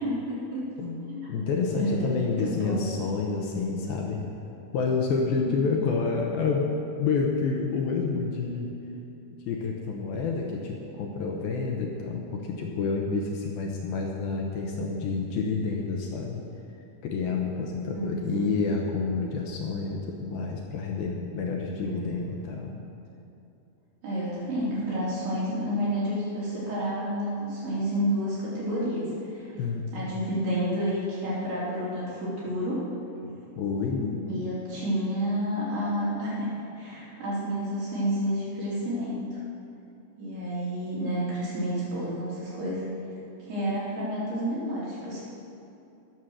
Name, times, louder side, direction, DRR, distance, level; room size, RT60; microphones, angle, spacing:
voice 1, 0.0-0.7 1.1-1.4 1.8-2.9 5.4-5.7 17.9-18.5 21.8-22.2 24.0-29.5 29.9-32.8 34.3-36.5 36.8-39.4 40.2-42.8 43.5-45.2, equal, 75° right, -9 dB, 5.5 m, -30 dB
voice 2, 1.3-4.2 4.7-6.7 7.0-8.7 9.5-16.4 17.0-22.8 29.6-30.1 33.6-34.2, left 4 dB, 75° left, 0 dB, 2.8 m, -29 dB
19.0 x 7.3 x 6.4 m, 2.7 s
omnidirectional pair, 4.5 m